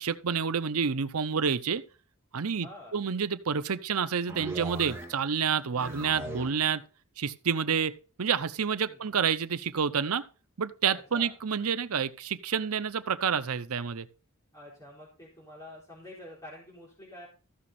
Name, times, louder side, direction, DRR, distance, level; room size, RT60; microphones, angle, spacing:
voice 1, 0.0-1.8 2.3-2.7 2.9-6.8 7.2-10.2 10.6-14.1, right 6 dB, 85° right, 0.7 m, -29 dB
voice 2, 2.6-3.0 5.8-6.2 8.9-9.3 10.9-11.3 14.5-17.3, left 1 dB, 15° left, 3.8 m, -48 dB
sound 1, 4.3-5.3 5.6-6.7, right 2 dB, 10° right, 2.0 m, -39 dB
14.0 x 6.1 x 4.2 m
head